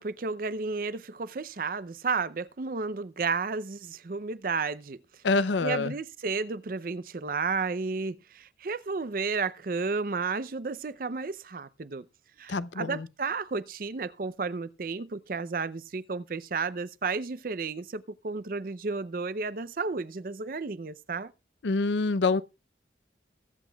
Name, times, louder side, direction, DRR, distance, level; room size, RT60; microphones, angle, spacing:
voice 1, 0.0-5.0 5.6-12.0 12.4-21.3, right 4 dB, 50° right, 0.5 m, -32 dB
voice 2, 5.2-5.9 12.5-13.1 21.6-22.4, left 3 dB, 85° left, 0.6 m, -26 dB
22.0 x 8.1 x 2.3 m
head